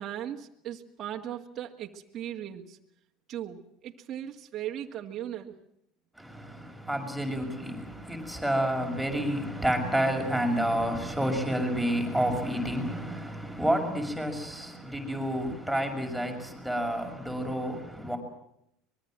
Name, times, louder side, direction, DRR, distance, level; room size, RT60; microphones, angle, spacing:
voice 1, 0.0-2.8 3.3-5.5, right 11 dB, 45° right, 2.1 m, -38 dB
voice 2, 6.2-18.2, equal, ahead, 6.4 m, -29 dB
24.5 x 22.0 x 7.7 m
hypercardioid pair, 90°, 0 cm